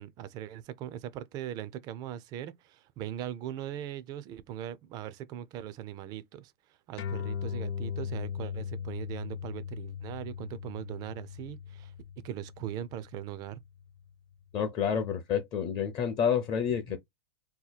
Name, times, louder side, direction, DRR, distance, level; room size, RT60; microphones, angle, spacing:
voice 1, 0.0-6.5 6.9-11.9 12.2-13.6, right 11 dB, 30° right, 0.3 m, -40 dB
sound 1, 7.0-13.8, left 7 dB, 65° left, 0.8 m, -38 dB
voice 2, 14.5-17.0, left 7 dB, 30° left, 0.5 m, -29 dB
2.8 x 2.2 x 4.0 m
supercardioid pair, 145°, 14 cm